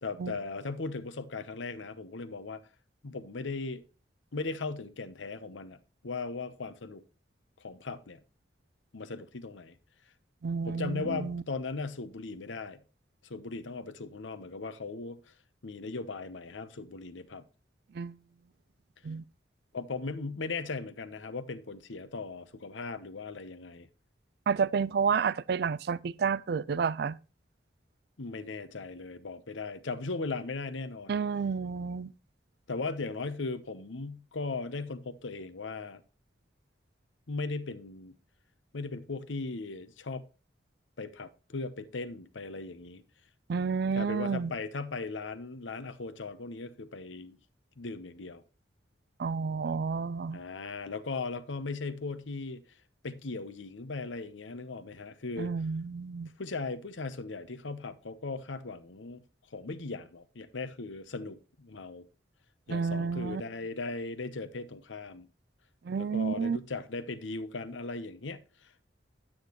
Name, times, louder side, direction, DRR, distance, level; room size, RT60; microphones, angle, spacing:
voice 1, 0.0-2.6 3.0-3.8 4.3-5.8 6.0-7.0 7.6-8.2 8.9-9.7 10.7-12.8 13.2-15.2 15.6-17.4 19.7-23.9 28.2-31.2 32.7-36.0 37.3-38.2 38.7-40.2 41.0-43.0 43.9-47.4 47.8-48.4 50.3-52.6 53.0-55.5 56.4-59.2 59.5-62.1 62.7-65.3 66.0-68.4, left 3 dB, 90° left, 0.9 m, -38 dB
voice 2, 10.4-11.4 18.0-18.1 19.0-19.2 24.5-27.2 31.1-32.1 43.5-44.5 49.2-50.4 55.4-56.3 62.7-63.4 65.9-66.6, right 5 dB, 55° right, 0.4 m, -30 dB
9.7 x 8.8 x 3.0 m
head